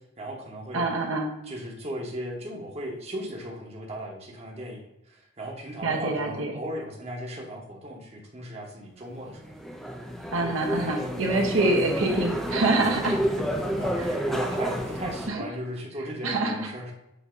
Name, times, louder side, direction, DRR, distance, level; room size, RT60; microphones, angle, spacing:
voice 1, 0.2-0.8 1.5-9.5 13.8-16.9, right 1 dB, 30° right, -1 dB, 1.1 m, -36 dB
voice 2, 0.7-1.3 5.8-6.5 10.3-13.2 14.0-14.2 15.3-15.4 16.2-16.7, right 2 dB, 60° right, 1 dB, 1.0 m, -25 dB
sound 1, 9.3-15.3, equal, ahead, 0.5 m, -30 dB
7.0 x 2.8 x 5.0 m, 0.87 s
head